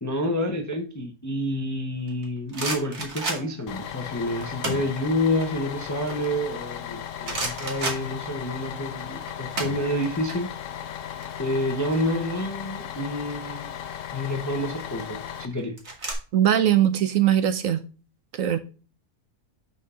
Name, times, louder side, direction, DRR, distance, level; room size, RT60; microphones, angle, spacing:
voice 1, 0.0-10.5 11.4-13.7 14.1-15.8, left 1 dB, 20° left, 4 dB, 0.5 m, -28 dB
sound 1, 2.1-3.7 4.4-4.9 5.3-6.9 7.2-8.6 8.9-10.3 10.6-10.8 11.1-12.6 13.6-14.0 14.7-16.1, right 2 dB, 45° right, 1.9 m, -33 dB
Bus, 3.7-15.5, left 9 dB, 65° left, 0.9 m, -36 dB
voice 2, 16.3-17.8 18.3-18.6, right 10 dB, 65° right, 11 dB, 0.9 m, -20 dB
6.0 x 4.6 x 5.5 m, 0.35 s
omnidirectional pair, 1.6 m